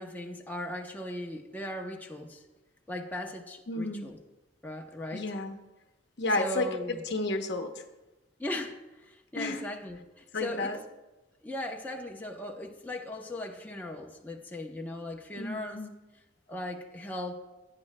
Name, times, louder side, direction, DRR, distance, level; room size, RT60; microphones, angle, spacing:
voice 1, 0.0-2.4 2.9-4.2 4.6-5.2 6.4-7.0 8.4-10.8 11.4-15.8 16.5-17.3, left 1 dB, 10° left, 0 dB, 0.7 m, -38 dB
voice 2, 3.7-4.1 5.1-5.6 6.2-6.7 7.1-7.8 9.4-9.6 10.3-10.8 15.4-15.9, left 2 dB, 65° left, 5 dB, 0.8 m, -31 dB
14.5 x 9.6 x 2.2 m, 1.1 s
head